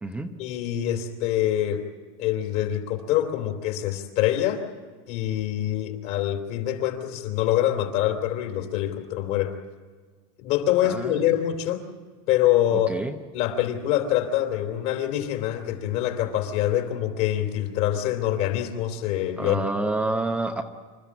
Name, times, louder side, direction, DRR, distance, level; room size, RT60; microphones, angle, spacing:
voice 1, 0.4-1.8 2.2-4.6 5.1-9.6 10.4-11.8 12.3-12.9 13.3-19.6, left 12 dB, 50° left, 5 dB, 2.9 m, -25 dB
voice 2, 10.8-11.3 12.7-13.2 19.4-20.6, right 2 dB, 10° right, 4 dB, 0.9 m, -28 dB
27.0 x 13.5 x 8.4 m, 1.5 s
supercardioid pair, 165°, 17 cm